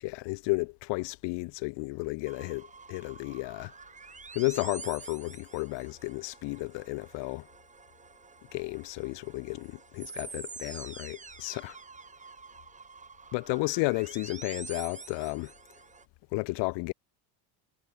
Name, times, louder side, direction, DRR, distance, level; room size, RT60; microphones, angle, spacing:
voice 1, 0.0-3.7 4.3-7.5 8.5-11.8 13.3-15.5 16.3-16.9, left 25 dB, 65° left, 7.6 m, -33 dB
sound 1, 2.3-16.0, right 5 dB, 15° right, 3.5 m, -47 dB
cardioid pair, 140°, 44 cm